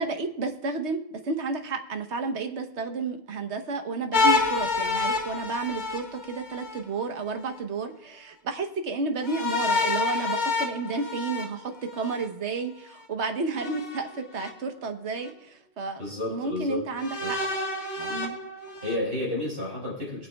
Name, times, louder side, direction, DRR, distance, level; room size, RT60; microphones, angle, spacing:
voice 1, 0.0-16.0 16.3-17.4 18.1-18.4, right 4 dB, 80° right, 6 dB, 1.3 m, -31 dB
sound 1, 4.1-6.8 9.2-12.3 13.5-14.5 15.2-15.3 17.0-19.0, left 3 dB, 75° left, 1.9 m, -28 dB
voice 2, 16.0-16.8 17.2-17.3 18.0-18.1 18.8-20.3, left 1 dB, 60° right, -5 dB, 5.3 m, -31 dB
20.0 x 9.0 x 2.3 m, 0.77 s
omnidirectional pair, 1.1 m